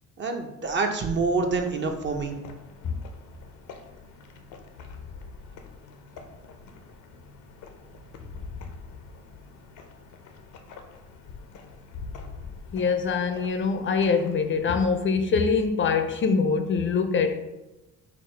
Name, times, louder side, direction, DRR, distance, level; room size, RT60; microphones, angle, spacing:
voice 1, 0.2-2.4, right 4 dB, 40° right, 4 dB, 0.6 m, -26 dB
sound 1, 1.5-14.8, left 4 dB, 85° left, 0.6 m, -45 dB
voice 2, 12.7-17.4, left 5 dB, 40° left, 7 dB, 0.5 m, -24 dB
4.9 x 2.0 x 4.3 m, 0.99 s
cardioid pair, 90°, 30 cm